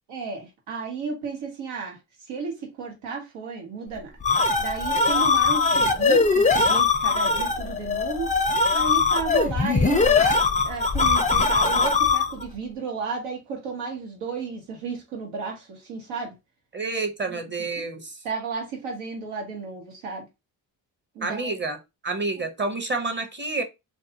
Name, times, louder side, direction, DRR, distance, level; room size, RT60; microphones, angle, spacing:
voice 1, 0.1-4.1 4.6-8.3 8.7-10.4 10.6-16.3 17.3-17.4 17.8-17.9 18.2-20.3 21.1-21.6 22.4-22.5, right 4 dB, 85° right, 1.0 m, -33 dB
sound 1, 4.0-12.5, left 4 dB, 15° left, 0.4 m, -21 dB
voice 2, 16.7-18.2 21.2-21.8 22.0-23.6, right 3 dB, 25° right, 0.7 m, -29 dB
2.6 x 2.2 x 2.7 m
supercardioid pair, 50°, 49 cm